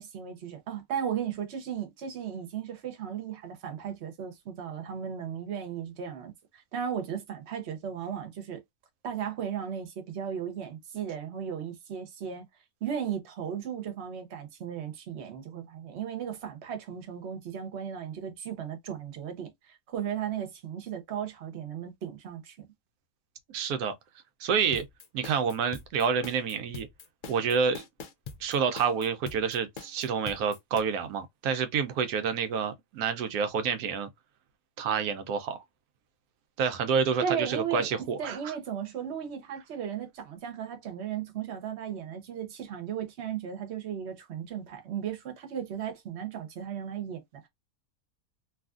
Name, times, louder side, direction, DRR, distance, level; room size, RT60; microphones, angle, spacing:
voice 1, 0.0-8.6 9.0-12.5 12.8-22.7 37.2-47.5, right 8 dB, 55° right, 1.0 m, -36 dB
voice 2, 23.5-23.9 24.4-24.8 25.1-26.9 27.3-27.8 28.4-34.1 34.8-35.6 36.6-38.4, right 6 dB, 90° right, 1.1 m, -28 dB
sound 1, 24.7-30.8, left 5 dB, 75° left, 0.4 m, -43 dB
3.0 x 2.5 x 2.3 m
omnidirectional pair, 1.5 m